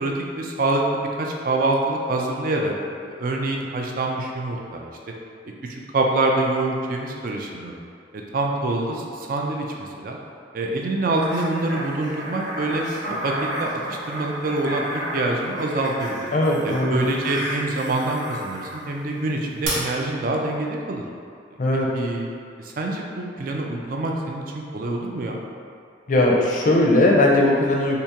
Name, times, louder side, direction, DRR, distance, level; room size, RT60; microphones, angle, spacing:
voice 1, 0.0-2.7 3.1-4.9 5.6-7.8 8.1-10.2 10.5-12.8 13.2-13.8 14.1-16.1 16.6-21.0 21.9-22.3 22.6-25.4, right 2 dB, 50° right, 0 dB, 0.4 m, -25 dB
sound 1, 11.2-18.8 19.6-19.7, right 1 dB, 70° right, 1.0 m, -32 dB
voice 2, 16.3-17.0 21.6-21.9 26.1-28.0, left 1 dB, 45° left, -2 dB, 0.4 m, -18 dB
3.4 x 2.8 x 2.8 m, 2.4 s
head